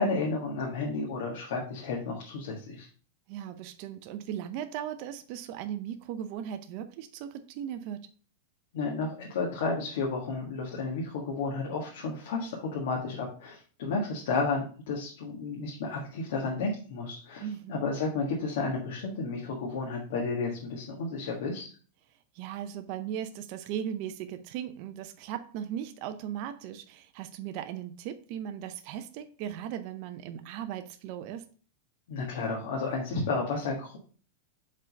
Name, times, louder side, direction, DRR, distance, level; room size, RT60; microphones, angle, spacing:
voice 1, 0.0-2.9 8.7-21.7 32.1-34.0, left 3 dB, 70° left, -2 dB, 1.6 m, -32 dB
voice 2, 3.3-8.1 17.4-17.8 22.3-31.5, right 10 dB, 45° right, 9 dB, 0.5 m, -37 dB
5.4 x 3.8 x 5.2 m, 0.41 s
supercardioid pair, 145°, 0 cm